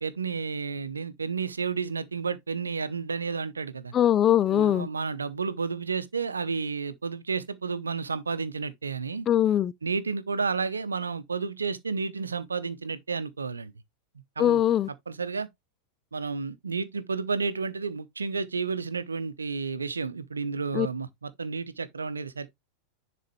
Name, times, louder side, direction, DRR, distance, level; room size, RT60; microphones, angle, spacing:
voice 1, 0.0-3.9 4.5-9.3 9.8-13.7 14.4-14.6 15.1-15.5 16.1-22.5, right 5 dB, 75° right, 0.8 m, -31 dB
voice 2, 3.9-4.9 9.3-9.7 14.4-14.9 20.7-20.9, left 11 dB, 30° left, 0.4 m, -22 dB
10.5 x 4.2 x 3.1 m
figure-of-eight pair, 90°, 0 cm